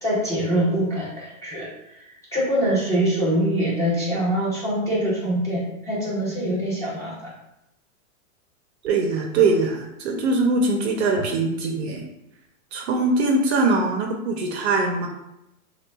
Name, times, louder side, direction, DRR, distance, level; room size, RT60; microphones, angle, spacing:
voice 1, 0.0-7.3, right 1 dB, 5° left, -8 dB, 0.8 m, -24 dB
voice 2, 8.8-12.1 12.7-15.1, right 3 dB, 50° right, 2 dB, 0.6 m, -22 dB
6.5 x 2.3 x 2.3 m, 0.86 s
supercardioid pair, 155°, 44 cm